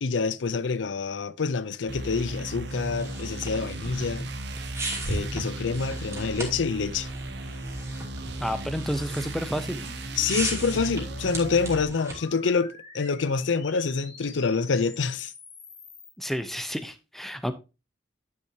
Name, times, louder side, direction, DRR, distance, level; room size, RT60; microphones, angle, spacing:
voice 1, 0.0-4.3 5.1-7.1 10.2-15.3, left 5 dB, 85° left, 0.5 m, -27 dB
sound 1, 1.9-11.8, right 1 dB, 65° right, 1.1 m, -36 dB
sound 2, 2.7-12.3, right 2 dB, 15° right, 2.7 m, -37 dB
sound 3, 6.2-16.1, left 2 dB, 35° left, 2.5 m, -48 dB
voice 2, 8.4-9.9 16.2-17.5, equal, ahead, 0.7 m, -30 dB
10.5 x 6.7 x 2.8 m
head